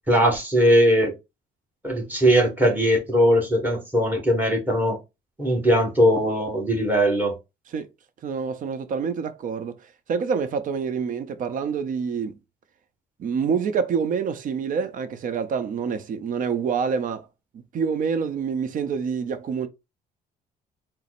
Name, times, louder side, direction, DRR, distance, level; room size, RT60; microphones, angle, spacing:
voice 1, 0.1-1.1 1.8-5.0 5.4-7.4, equal, 10° right, 1.7 m, -20 dB
voice 2, 8.2-9.8 10.1-12.4 13.2-17.3 17.7-19.7, right 6 dB, 50° right, 0.7 m, -26 dB
4.1 x 2.0 x 4.1 m
cardioid pair, 110°, 17 cm